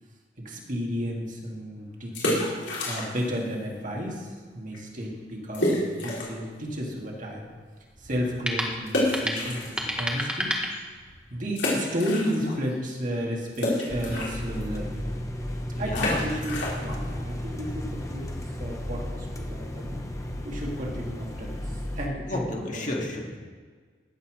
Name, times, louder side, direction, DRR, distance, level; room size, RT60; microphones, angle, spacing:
voice 1, 0.4-7.5 8.0-10.6 11.3-15.1 15.8-18.3 18.6-20.0 20.4-22.9, equal, 45° right, -1 dB, 2.1 m, -33 dB
sound 1, 2.0-3.4 3.6-3.7 4.3-4.5 4.7-4.8 5.5-6.5 6.9-7.0 8.9-10.2 10.7-10.8 11.5-12.7 13.0-18.5, left 1 dB, 80° left, 3.7 m, -30 dB
sound 2, 6.0-11.3, equal, 5° right, 1.3 m, -33 dB
sound 3, 13.9-22.1, left 1 dB, 20° left, 1.0 m, -34 dB
voice 2, 15.7-16.2 22.3-23.5, left 2 dB, 45° left, -1 dB, 1.9 m, -31 dB
16.0 x 5.7 x 6.3 m, 1.6 s
head